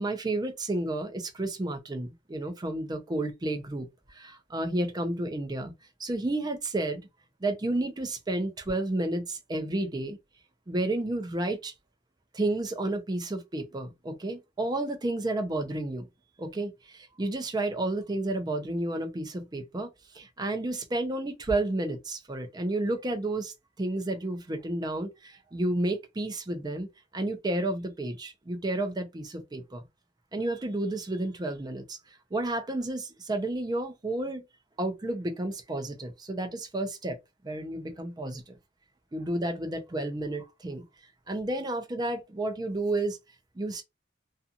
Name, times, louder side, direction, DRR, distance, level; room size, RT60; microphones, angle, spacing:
voice 1, 0.0-5.7 6.0-7.0 7.4-10.2 10.7-11.7 12.3-16.1 16.4-19.9 20.1-26.9 27.1-29.8 30.3-32.0 32.3-34.4 34.8-37.2 37.4-38.6 39.1-40.8 41.3-43.2 43.6-43.8, right 2 dB, 20° right, 0.5 m, -31 dB
2.5 x 2.4 x 2.7 m
head